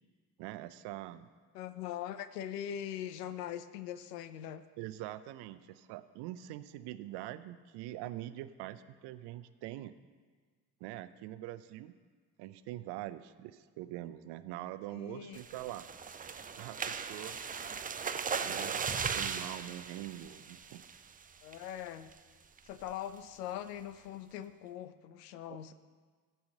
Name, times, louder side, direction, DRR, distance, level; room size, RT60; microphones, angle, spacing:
voice 1, 0.4-1.3 4.8-9.9 10.8-11.9 12.4-15.9 16.6-17.4 18.4-20.8 25.5-25.6, right 14 dB, 55° right, 13 dB, 0.7 m, -44 dB
voice 2, 1.5-4.7 14.9-15.4 21.4-22.1 22.6-25.7, left 10 dB, 75° left, 12 dB, 0.7 m, -41 dB
sound 1, 15.3-21.1 21.5-21.8 22.1-22.2 22.6-22.9, right 6 dB, 20° right, 0.5 m, -38 dB
15.0 x 5.6 x 6.5 m, 1.5 s
figure-of-eight pair, 50°, 48 cm